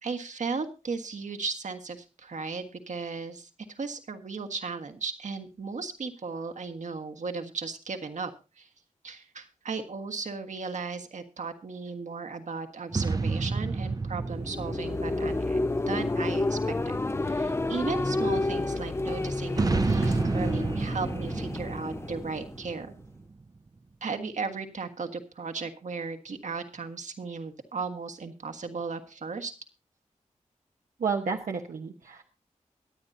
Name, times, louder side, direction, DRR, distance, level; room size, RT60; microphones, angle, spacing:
voice 1, 0.0-8.7 9.0-15.6 15.9-16.6 16.8-17.0 17.2-22.9 24.0-29.5, right 4 dB, 70° right, 7 dB, 1.5 m, -36 dB
sound 1, 12.9-16.6 19.5-23.3, right 3 dB, 30° right, 0.5 m, -30 dB
sound 2, 14.2-22.9, left 2 dB, 20° left, 0.5 m, -30 dB
voice 2, 31.0-32.2, right 5 dB, 85° right, 1 dB, 1.0 m, -31 dB
23.5 x 9.0 x 2.7 m, 0.31 s
wide cardioid pair, 70°, 13 cm